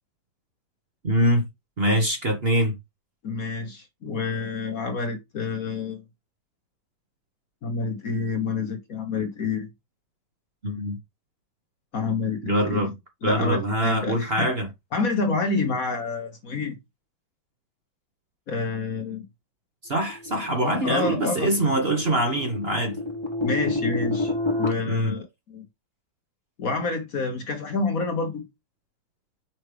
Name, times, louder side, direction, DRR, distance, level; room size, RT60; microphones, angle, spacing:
voice 1, 1.0-1.5 1.8-2.8 10.6-11.0 12.4-12.9 13.2-14.7 19.8-23.0 24.8-25.1, right 1 dB, 35° right, 1.3 m, -23 dB
voice 2, 3.2-6.0 7.6-9.7 11.9-12.9 13.2-14.5 14.9-16.8 18.5-19.2 20.6-21.5 23.4-24.3 24.6-25.6 26.6-28.4, left 4 dB, 50° left, 1.4 m, -28 dB
sound 1, 20.0-24.7, left 2 dB, 20° left, 0.9 m, -29 dB
5.8 x 5.3 x 3.3 m
omnidirectional pair, 2.1 m